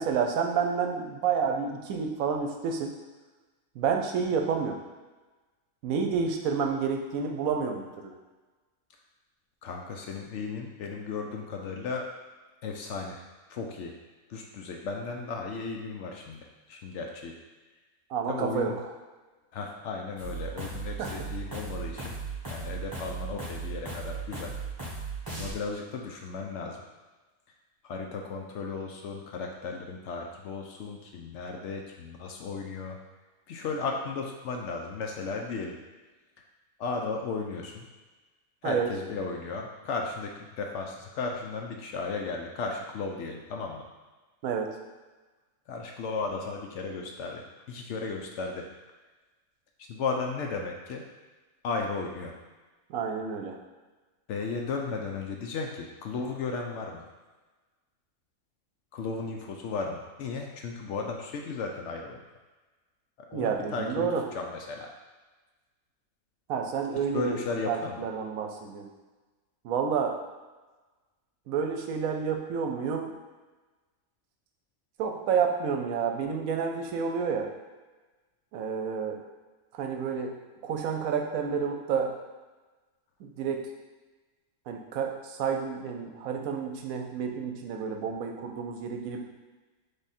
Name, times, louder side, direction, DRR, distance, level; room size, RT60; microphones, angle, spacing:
voice 1, 0.0-2.9 3.8-4.8 5.8-8.1 18.1-18.7 21.0-21.1 38.6-38.9 44.4-44.7 52.9-53.6 63.3-64.2 66.5-67.4 67.7-68.9 69.6-70.2 71.5-73.1 75.0-77.5 78.5-79.2 79.7-80.3 80.6-82.1 83.4-83.6 84.7-89.2, right 6 dB, 90° right, 3 dB, 1.0 m, -29 dB
voice 2, 9.6-12.1 12.6-13.2 13.5-13.9 14.3-17.4 18.3-18.8 19.5-22.2 22.5-24.6 25.4-26.8 27.8-33.0 33.5-35.8 36.8-37.8 38.6-43.9 45.7-48.7 49.9-51.0 51.6-52.3 54.3-57.1 58.9-62.2 63.2-64.9 67.1-68.1, left 4 dB, 65° left, 1 dB, 0.8 m, -35 dB
sound 1, 20.2-25.5, right 4 dB, 15° right, 1.3 m, -37 dB
3.6 x 3.5 x 4.2 m, 1.2 s
omnidirectional pair, 1.4 m